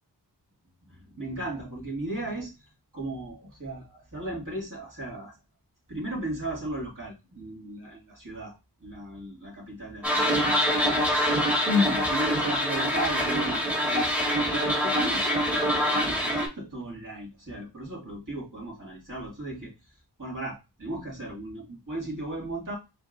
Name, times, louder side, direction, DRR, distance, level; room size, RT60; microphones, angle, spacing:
voice 1, 0.8-2.5 2.9-5.4 5.9-19.7 20.2-22.8, equal, 45° right, -4 dB, 2.3 m, -35 dB
sound 1, 10.0-16.5, equal, 5° right, 1.8 m, -25 dB
5.2 x 3.5 x 2.5 m, 0.26 s
wide cardioid pair, 65°, 42 cm